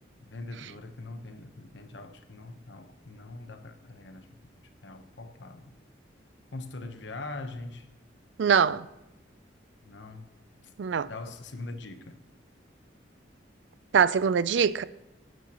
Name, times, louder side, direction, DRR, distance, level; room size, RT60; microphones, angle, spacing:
voice 1, 0.2-4.3 4.8-5.7 6.5-7.9 9.8-10.3 11.0-12.2, left 2 dB, 70° left, 1.0 m, -42 dB
voice 2, 8.4-8.9 10.8-11.1 13.9-14.8, right 7 dB, 75° right, 0.4 m, -23 dB
18.0 x 9.4 x 3.0 m
head